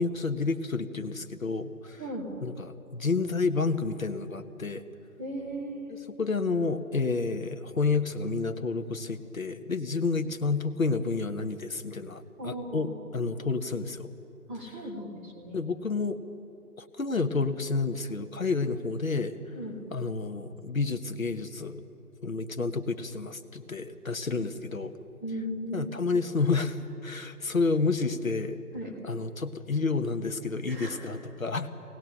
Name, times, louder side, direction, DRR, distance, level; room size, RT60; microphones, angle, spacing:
voice 1, 0.0-2.0 2.4-2.5 2.9-4.8 6.2-14.1 15.5-16.2 16.8-19.3 19.9-21.8 22.2-25.0 25.7-28.6 29.0-31.7, left 4 dB, 60° left, 8 dB, 1.4 m, -30 dB
voice 2, 2.0-2.3 5.2-6.0 12.4-12.9 14.5-15.6 19.5-19.8 22.6-22.7 24.3-24.4 25.2-25.9 28.7-28.9 30.7-31.0, equal, 10° right, -6 dB, 2.1 m, -37 dB
23.0 x 19.0 x 6.6 m, 2.7 s
figure-of-eight pair, 155°, 46 cm